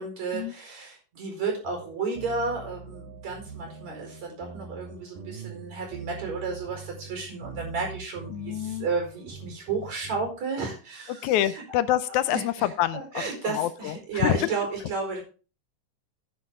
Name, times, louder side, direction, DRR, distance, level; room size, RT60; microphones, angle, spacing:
voice 1, 0.0-11.6 12.3-12.4 12.9-15.2, right 4 dB, 55° right, 2 dB, 5.8 m, -32 dB
sound 1, 1.6-10.3, right 6 dB, 85° right, 2.9 m, -43 dB
voice 2, 8.3-8.9 11.1-14.5, left 13 dB, 75° left, 14 dB, 1.9 m, -27 dB
11.0 x 10.0 x 3.7 m, 0.33 s
omnidirectional pair, 3.8 m